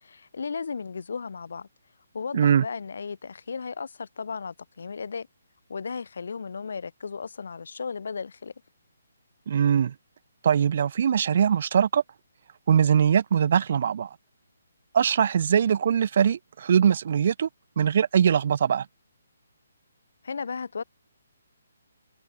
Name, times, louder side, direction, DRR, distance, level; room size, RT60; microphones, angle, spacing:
voice 1, 0.0-1.7 2.1-5.3 5.7-8.5 20.2-20.8, left 5 dB, 55° left, 1.5 m, -35 dB
voice 2, 2.3-2.6 9.5-9.9 10.4-12.0 12.7-14.1 14.9-17.5 17.8-18.9, right 8 dB, 45° right, 0.7 m, -21 dB
figure-of-eight pair, 135°, 0 cm